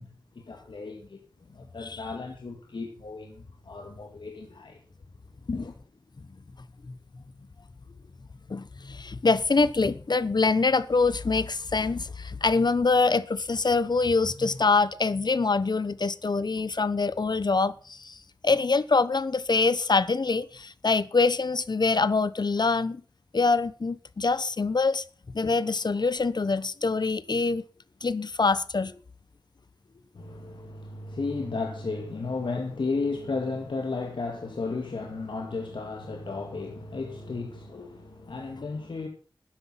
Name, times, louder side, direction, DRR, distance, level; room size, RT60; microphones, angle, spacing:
voice 1, 0.0-4.8 5.5-5.7 30.1-39.1, left 3 dB, 85° left, 2.1 m, -34 dB
voice 2, 8.5-18.2 18.4-23.0 23.3-25.0 25.3-27.6 28.0-28.9, left 4 dB, 60° left, 1.0 m, -24 dB
12.5 x 10.0 x 5.8 m
wide cardioid pair, 50°, 8 cm